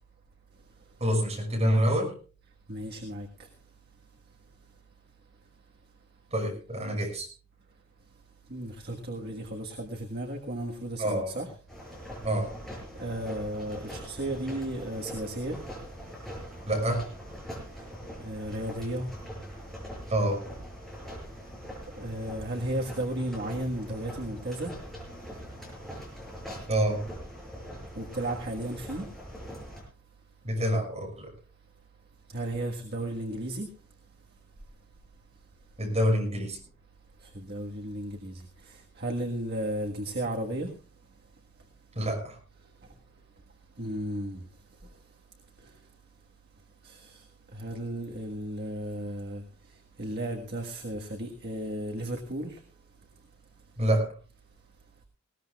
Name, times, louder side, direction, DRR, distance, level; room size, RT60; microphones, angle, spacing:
voice 1, 1.0-2.1 6.3-7.3 11.0-11.3 12.2-12.5 16.7-17.1 20.1-20.4 26.7-27.0 30.4-31.3 35.8-36.6 41.9-42.4 53.8-54.1, equal, 30° right, 6.2 m, -27 dB
voice 2, 2.7-3.3 8.5-11.5 13.0-15.6 18.2-19.1 21.9-24.7 27.9-29.1 32.3-33.7 37.3-40.7 43.8-44.4 46.8-47.2 47.5-49.4 50.0-52.6, right 1 dB, 45° right, 1.6 m, -34 dB
sound 1, 11.7-29.8, equal, ahead, 5.9 m, -42 dB
20.0 x 18.0 x 2.4 m
head